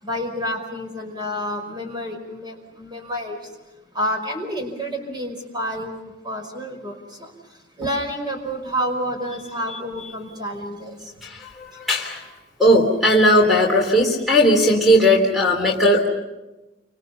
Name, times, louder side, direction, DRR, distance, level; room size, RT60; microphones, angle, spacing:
voice 1, 0.0-3.4 3.9-7.3 7.8-11.0, equal, 25° right, 3 dB, 5.2 m, -29 dB
voice 2, 11.2-12.2 12.6-16.1, equal, ahead, -1 dB, 3.4 m, -17 dB
29.0 x 26.5 x 5.6 m, 1.1 s
head